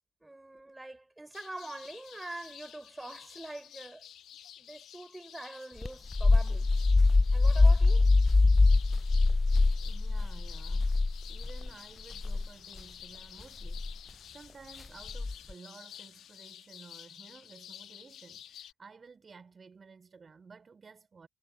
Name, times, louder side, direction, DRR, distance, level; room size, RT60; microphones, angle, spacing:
voice 1, 0.2-4.0 4.6-6.7 7.3-8.1, right 2 dB, 15° right, 5.8 m, -44 dB
sound 1, 1.3-18.7, left 10 dB, 65° left, 1.4 m, -51 dB
sound 2, 5.8-11.7 12.1-12.5 13.6-13.9 15.1-15.5, left 3 dB, 25° left, 0.6 m, -24 dB
voice 2, 9.8-11.0 11.3-21.3, right 5 dB, 40° right, 3.7 m, -54 dB
hypercardioid pair, 45°, 0 cm